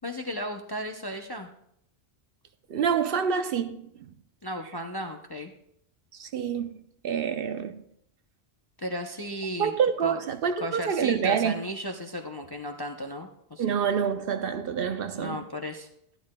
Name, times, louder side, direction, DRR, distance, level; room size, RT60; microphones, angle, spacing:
voice 1, 0.0-1.5 4.4-5.5 8.8-9.7 10.0-10.2 10.6-13.7 15.1-15.9, equal, 30° left, 0.4 m, -35 dB
voice 2, 2.7-4.1 6.1-6.8 7.0-7.8 9.6-11.6 13.6-15.5, right 7 dB, 65° right, 0.7 m, -27 dB
12.0 x 12.0 x 2.2 m
omnidirectional pair, 1.2 m